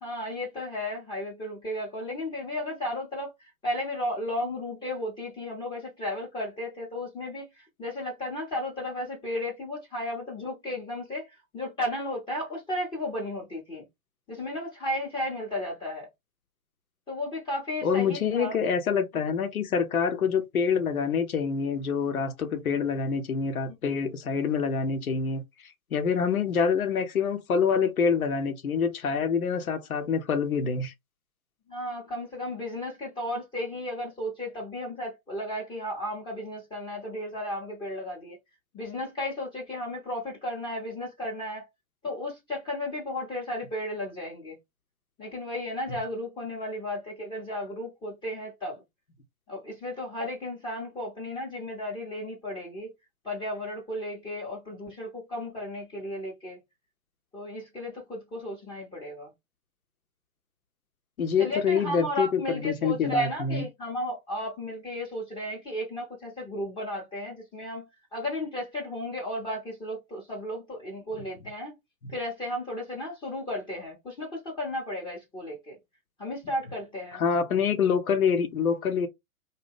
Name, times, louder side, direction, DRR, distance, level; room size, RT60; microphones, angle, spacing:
voice 1, 0.0-3.3 3.6-13.8 14.3-16.1 17.1-18.6 31.7-38.4 38.7-41.7 42.0-44.6 45.2-48.8 49.5-52.9 53.2-56.6 57.3-59.3 61.4-71.7 72.1-75.8 76.2-77.2, left 1 dB, 10° left, 0.6 m, -34 dB
voice 2, 17.8-30.9 61.2-63.6 77.1-79.1, left 6 dB, 80° left, 0.7 m, -26 dB
2.7 x 2.2 x 3.4 m
figure-of-eight pair, 105°, 42 cm